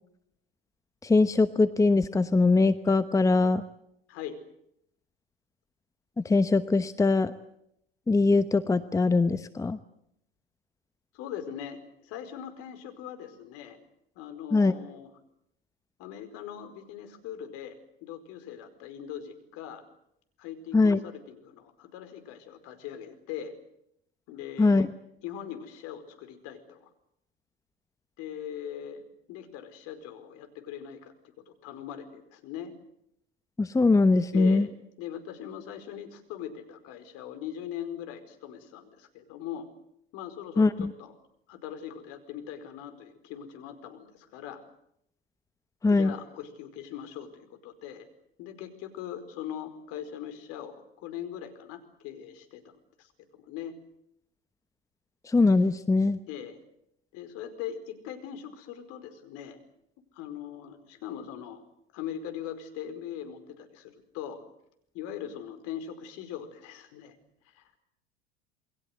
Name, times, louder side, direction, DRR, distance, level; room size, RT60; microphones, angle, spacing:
voice 1, 1.0-3.6 6.2-7.3 8.1-9.8 14.5-14.7 20.7-21.0 24.6-24.9 33.6-34.7 40.6-40.9 45.8-46.1 55.3-56.2, left 3 dB, 10° left, 12 dB, 1.0 m, -22 dB
voice 2, 4.1-4.4 11.1-13.8 14.1-15.1 16.0-19.8 20.4-23.5 24.3-24.9 25.2-26.9 28.2-29.0 29.3-31.1 31.5-32.7 34.3-34.7 35.0-39.7 40.1-41.1 41.5-44.6 45.8-48.1 48.4-52.6 53.0-53.7 56.3-56.6 57.1-59.6 60.1-61.6 61.9-64.4 64.9-67.1 67.4-67.8, left 9 dB, 55° left, 9 dB, 4.9 m, -41 dB
28.5 x 22.0 x 8.1 m, 0.76 s
hypercardioid pair, 85°, 30 cm